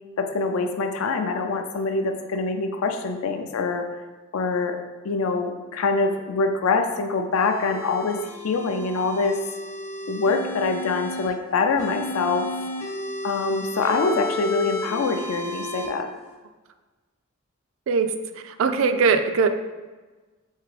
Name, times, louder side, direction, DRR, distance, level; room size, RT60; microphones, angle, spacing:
voice 1, 0.2-3.9 4.3-4.8 5.0-8.2 8.4-9.4 10.1-12.5 13.2-16.1, left 4 dB, 85° left, 6 dB, 0.4 m, -24 dB
sound 1, 7.3-11.3 11.8-15.9, equal, 35° left, 0.6 m, -33 dB
voice 2, 17.9-19.5, right 5 dB, 70° right, 9 dB, 0.3 m, -21 dB
3.7 x 3.3 x 3.2 m, 1.3 s
head